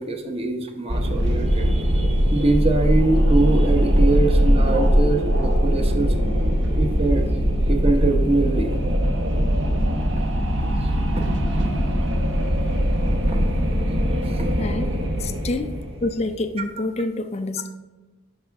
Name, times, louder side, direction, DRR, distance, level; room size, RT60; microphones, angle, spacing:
voice 1, 0.0-6.1 6.7-7.2 7.7-8.7 11.2-11.3 11.6-11.7 13.3-13.4 14.2-14.5, right 2 dB, 30° right, 3 dB, 0.8 m, -23 dB
Wind, 0.9-16.2, equal, 60° right, 1.0 m, -21 dB
voice 2, 14.6-14.9 15.2-17.7, left 2 dB, 30° left, 8 dB, 0.4 m, -27 dB
12.0 x 4.9 x 3.5 m, 1.2 s
head